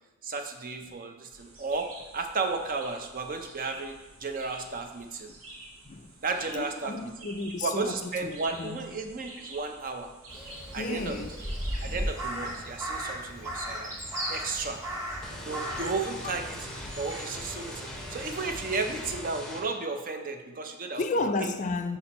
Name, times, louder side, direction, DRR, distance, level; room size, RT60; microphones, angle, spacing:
voice 1, 0.2-5.3 6.2-7.1 7.6-10.1 10.7-11.2 11.8-14.0 14.3-14.8 15.5-16.6 17.0-21.1, right 3 dB, 40° right, 0.5 m, -33 dB
sound 1, 1.3-12.6, right 2 dB, 75° right, 1.0 m, -49 dB
voice 2, 6.5-8.8 10.8-11.3 11.8-12.0 21.0-22.0, left 3 dB, 35° left, 0.3 m, -32 dB
Crow, 10.3-19.2, equal, 15° right, 1.2 m, -37 dB
sound 2, 15.2-19.6, equal, 5° left, 0.7 m, -41 dB
5.2 x 4.3 x 5.3 m
head